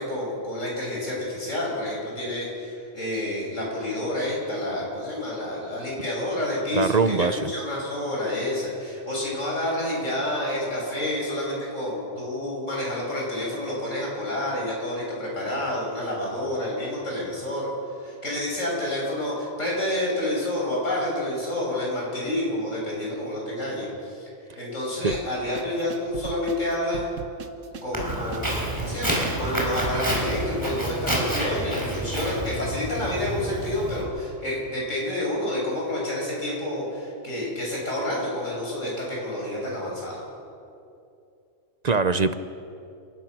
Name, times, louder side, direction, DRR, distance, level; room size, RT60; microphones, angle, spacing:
voice 1, 0.0-7.3 7.5-17.7 18.0-24.3 24.6-27.1 27.8-40.2, left 1 dB, 80° left, -4 dB, 7.3 m, -29 dB
voice 2, 6.7-7.5 25.0-25.1 41.8-42.4, right 4 dB, 40° right, 11 dB, 0.7 m, -22 dB
sound 1, 25.1-30.6, right 5 dB, 80° right, 1.5 m, -39 dB
Walk footsteps, 27.9-34.0, right 1 dB, 15° right, 4.6 m, -29 dB
29.0 x 17.5 x 6.1 m, 2.6 s
omnidirectional pair, 1.3 m